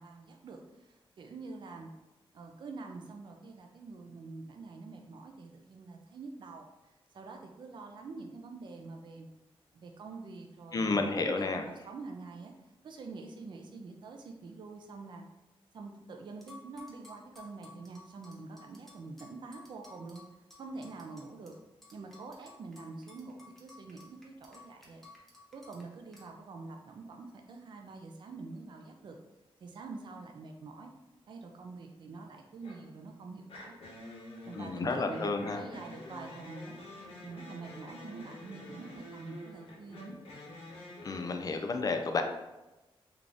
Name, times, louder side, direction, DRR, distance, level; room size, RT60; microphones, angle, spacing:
voice 1, 0.0-1.9 2.3-6.7 7.1-9.3 9.7-12.5 12.8-15.2 15.7-20.2 20.6-21.6 21.9-25.1 25.5-29.2 29.6-30.9 31.3-33.7 34.4-36.8 37.2-40.2, right 3 dB, 50° right, 3 dB, 0.4 m, -46 dB
voice 2, 10.7-11.7 34.5-35.7 41.0-42.2, left 3 dB, 40° left, 5 dB, 0.3 m, -31 dB
sound 1, 16.4-21.6 21.8-25.8 26.1-26.3, left 3 dB, 5° left, 0.7 m, -54 dB
sound 2, 32.6-32.9 33.5-41.3, left 1 dB, 80° left, 1.0 m, -48 dB
3.7 x 2.4 x 3.3 m, 1.0 s
wide cardioid pair, 165°, 10 cm